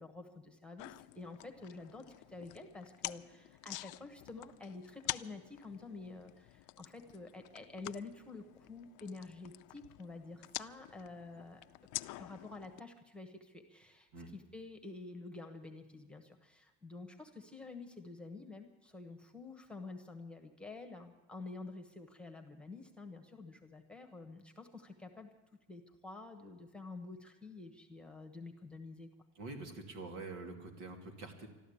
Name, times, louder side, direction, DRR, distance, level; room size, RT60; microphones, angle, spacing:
voice 1, 0.0-11.6 12.2-25.3 25.7-29.1, left 3 dB, 5° left, 4 dB, 1.1 m, -49 dB
sound 1, 0.8-12.8, left 20 dB, 90° left, 0.5 m, -47 dB
voice 2, 29.4-31.5, right 3 dB, 80° right, 3 dB, 2.8 m, -46 dB
13.0 x 12.5 x 8.6 m, 1.2 s
cardioid pair, 160°, 30 cm